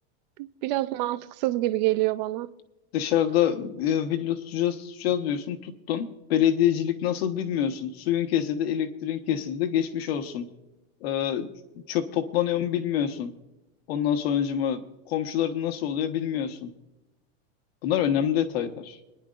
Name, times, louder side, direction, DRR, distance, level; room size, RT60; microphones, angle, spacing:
voice 1, 0.4-2.5, right 16 dB, 40° right, 0.6 m, -26 dB
voice 2, 2.9-10.5 11.0-11.5 11.9-13.3 13.9-16.7 17.8-19.0, left 10 dB, 65° left, 1.4 m, -26 dB
29.0 x 10.5 x 2.6 m
supercardioid pair, 170°, 33 cm